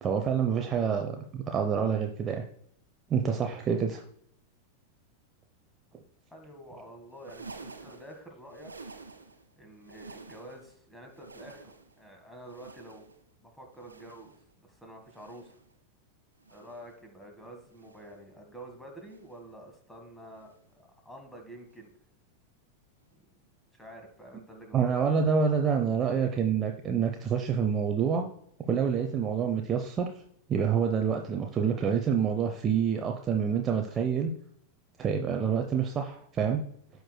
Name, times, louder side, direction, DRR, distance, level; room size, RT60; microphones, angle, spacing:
voice 1, 0.0-2.4 3.1-4.0 24.7-28.3 28.7-30.1 30.5-34.3 35.0-36.6, right 7 dB, 25° right, 3 dB, 0.7 m, -27 dB
voice 2, 0.6-1.0 6.3-8.7 9.6-13.1 13.4-15.6 16.5-21.9 23.1-23.3 23.7-25.3, right 1 dB, 5° left, 3 dB, 1.7 m, -48 dB
sound 1, 7.1-9.5 9.8-10.7 11.1-12.0 12.4-13.3 13.7-14.5 15.0-15.7 16.4-16.9 17.7-18.2 19.0-19.5 20.4-20.7 21.7-21.9 23.0-23.1, right 3 dB, 80° right, 0.8 m, -50 dB
13.5 x 4.7 x 2.2 m, 0.66 s
figure-of-eight pair, 90°, 0 cm